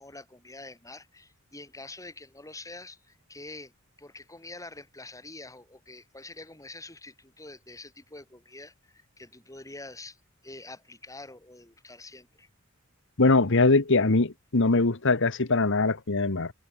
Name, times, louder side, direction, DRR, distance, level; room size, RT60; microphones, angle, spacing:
voice 1, 0.0-3.7 4.0-12.5, left 2 dB, 15° left, 6.7 m, -46 dB
voice 2, 13.2-16.5, left 3 dB, 60° left, 1.3 m, -22 dB
head